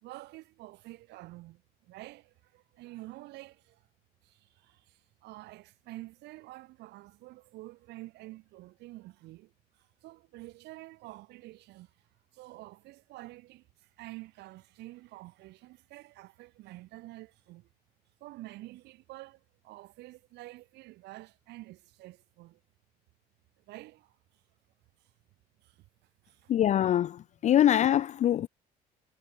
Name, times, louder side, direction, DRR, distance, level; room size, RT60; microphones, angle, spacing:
voice 1, 0.0-3.9 4.2-11.9 12.3-17.7 18.2-22.6 23.6-24.4 25.6-25.8 26.2-26.5, right 19 dB, 85° right, 3.8 m, -49 dB
voice 2, 26.5-28.5, left 11 dB, 45° left, 0.4 m, -24 dB
cardioid pair, 110°, 17 cm